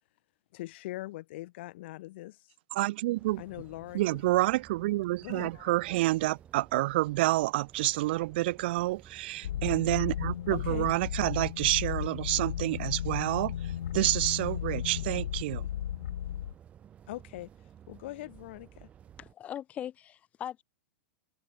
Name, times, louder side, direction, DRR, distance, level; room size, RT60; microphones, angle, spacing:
voice 1, 0.5-2.5 3.4-4.2 5.2-5.7 10.5-10.9 17.1-17.5 17.9-18.9, left 17 dB, 50° left, 3.3 m, -42 dB
voice 2, 2.7-3.4 3.9-13.5 13.9-15.7, right 18 dB, 45° right, 0.5 m, -28 dB
sound 1, 3.1-19.3, right 9 dB, 15° right, 1.9 m, -55 dB
sound 2, 9.4-16.5, left 11 dB, 75° left, 2.7 m, -34 dB
voice 3, 19.2-20.6, left 10 dB, 15° left, 1.0 m, -40 dB
supercardioid pair, 170°, 8 cm